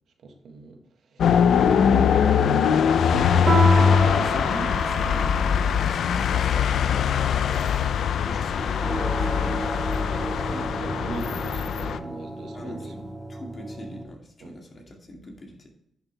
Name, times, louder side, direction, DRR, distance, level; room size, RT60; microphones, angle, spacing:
voice 1, 0.2-1.3 1.6-4.3 7.2-7.7 10.1-12.9 14.4-14.6, right 3 dB, 75° right, 4 dB, 1.6 m, -40 dB
sound 1, 1.2-12.0, left 7 dB, 80° left, 0.5 m, -22 dB
Piano, 3.5-8.4, right 3 dB, 35° right, 1.2 m, -30 dB
voice 2, 3.9-7.2 8.2-9.7 12.5-15.7, equal, 35° left, 1 dB, 2.3 m, -41 dB
sound 2, 8.5-14.0, right 1 dB, 20° right, 1.9 m, -34 dB
10.5 x 7.3 x 3.4 m, 0.79 s
cardioid pair, 120°, 0 cm